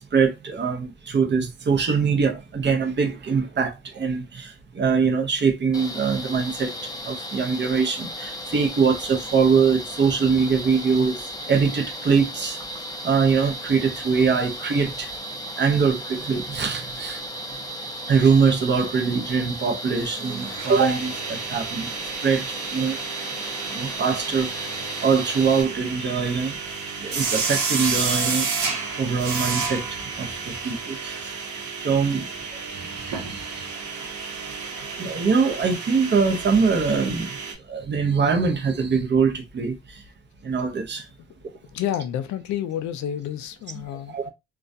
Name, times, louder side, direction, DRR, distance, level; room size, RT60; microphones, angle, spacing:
voice 1, 0.0-11.2 11.5-12.6 13.0-15.1 15.6-17.2 18.1-21.9 22.2-23.0 23.7-24.7 25.0-26.6 27.0-28.5 29.0-31.4 31.8-32.3 32.7-33.7 35.0-37.4 37.7-40.0 40.4-41.1 44.1-44.3, right 5 dB, 35° right, 0.6 m, -23 dB
sound 1, 5.7-25.6, equal, 15° left, 0.5 m, -35 dB
sound 2, 19.6-19.7 19.9-37.5, right 5 dB, 65° right, 0.9 m, -31 dB
voice 2, 41.7-44.3, left 10 dB, 70° left, 0.4 m, -29 dB
2.3 x 2.1 x 2.5 m
cardioid pair, 90°, 30 cm